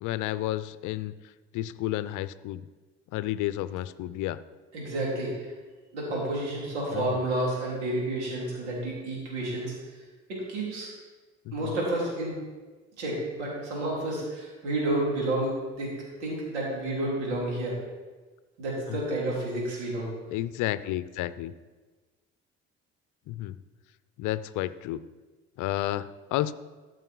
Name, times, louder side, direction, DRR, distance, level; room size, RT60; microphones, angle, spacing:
voice 1, 0.0-1.1 1.5-2.7 3.1-4.4 6.9-7.2 11.5-11.7 18.9-19.0 20.3-21.5 23.3-23.6 24.2-25.0 25.6-26.5, left 14 dB, 60° left, 16 dB, 0.6 m, -31 dB
voice 2, 4.7-5.5 5.9-9.7 10.3-10.9 11.5-12.4 13.0-17.8 18.6-20.1, right 1 dB, 85° right, -4 dB, 3.7 m, -30 dB
13.5 x 6.3 x 4.7 m, 1.3 s
hypercardioid pair, 55°, 34 cm